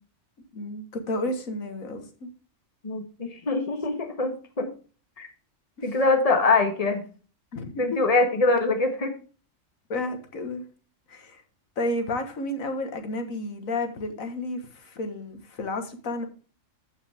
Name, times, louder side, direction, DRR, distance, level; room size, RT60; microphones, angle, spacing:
voice 1, 0.5-2.3 5.8-6.0 7.5-8.0 9.9-10.6 11.1-11.4 11.8-16.3, left 2 dB, 90° left, 7 dB, 1.9 m, -31 dB
voice 2, 2.8-4.7 5.2-5.3 5.8-7.0 7.8-9.1, left 3 dB, 30° left, 5 dB, 1.5 m, -23 dB
14.5 x 5.6 x 3.5 m, 0.38 s
omnidirectional pair, 1.4 m